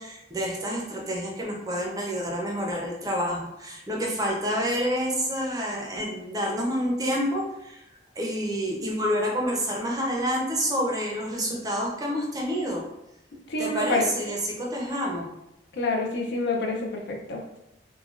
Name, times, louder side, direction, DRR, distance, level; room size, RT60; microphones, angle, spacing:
voice 1, 0.0-7.8 8.2-12.8 13.6-15.3, equal, 20° right, -2 dB, 0.5 m, -28 dB
voice 2, 13.5-14.0 15.7-17.6, left 2 dB, 65° left, 1 dB, 0.5 m, -27 dB
3.1 x 2.2 x 2.4 m, 0.87 s
head